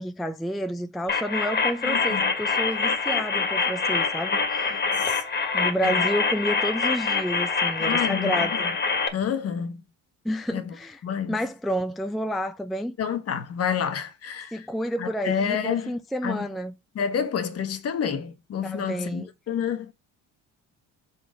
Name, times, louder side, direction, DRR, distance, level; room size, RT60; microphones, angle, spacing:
voice 1, 0.0-4.7 5.5-8.7 10.2-11.0 11.3-13.0 14.5-16.7 18.6-19.3, equal, ahead, 0.4 m, -30 dB
sound 1, 1.1-9.1, left 4 dB, 30° left, 1.6 m, -25 dB
voice 2, 1.8-2.3 4.9-5.2 5.8-6.0 7.8-8.5 9.1-9.8 10.5-10.7 11.0-11.4 13.0-14.7 15.0-16.0 16.2-16.5 16.9-19.9, left 8 dB, 45° left, 1.2 m, -29 dB
5.0 x 4.1 x 5.0 m
cardioid pair, 115°, 32 cm